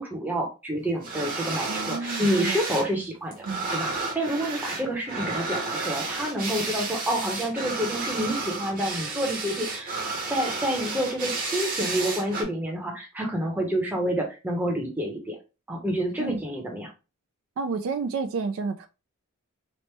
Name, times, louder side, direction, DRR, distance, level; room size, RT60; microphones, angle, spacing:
voice 1, 0.0-3.3 3.7-15.4 15.7-16.9, equal, 10° right, 0.7 m, -28 dB
sound 1, 1.0-2.9 3.1-12.4, right 3 dB, 40° right, 0.8 m, -32 dB
voice 2, 1.7-2.6 3.4-3.6 16.2-16.4 17.6-18.9, right 4 dB, 65° right, 0.3 m, -30 dB
3.0 x 2.0 x 3.2 m
head